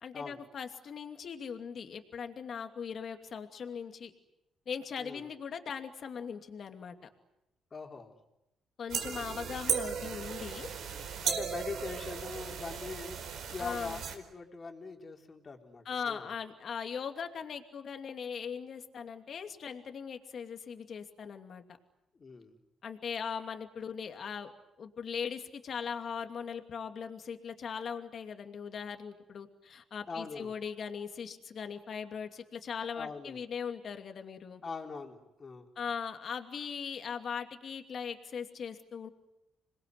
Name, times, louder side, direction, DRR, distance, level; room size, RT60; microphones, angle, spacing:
voice 1, 0.0-4.1 4.7-7.0 8.8-10.7 13.6-14.0 15.8-21.6 22.8-24.5 24.8-34.6 35.8-39.1, left 6 dB, 55° left, 6 dB, 2.6 m, -39 dB
voice 2, 7.7-8.1 11.2-13.2 13.5-16.3 22.1-22.6 30.1-30.5 32.9-33.4 34.6-35.7, left 4 dB, 35° left, 3 dB, 4.2 m, -42 dB
sound 1, 8.9-14.1, right 7 dB, 75° right, 4.6 m, -36 dB
27.0 x 21.5 x 9.7 m, 0.88 s
cardioid pair, 90°, 0 cm